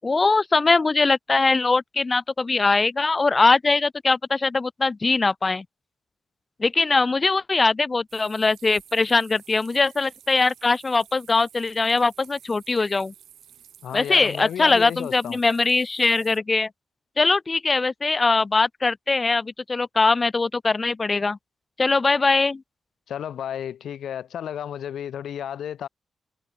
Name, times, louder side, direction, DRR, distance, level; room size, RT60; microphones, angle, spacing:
voice 1, 0.0-5.6 6.6-13.1 13.9-16.7 17.2-21.4 21.8-22.6, left 3 dB, 25° left, 0.5 m, -21 dB
sound 1, 8.1-16.4, right 9 dB, 85° right, 5.3 m, -51 dB
voice 2, 13.8-15.4 23.1-25.9, left 9 dB, 80° left, 1.8 m, -32 dB
wide cardioid pair, 160°, 0 cm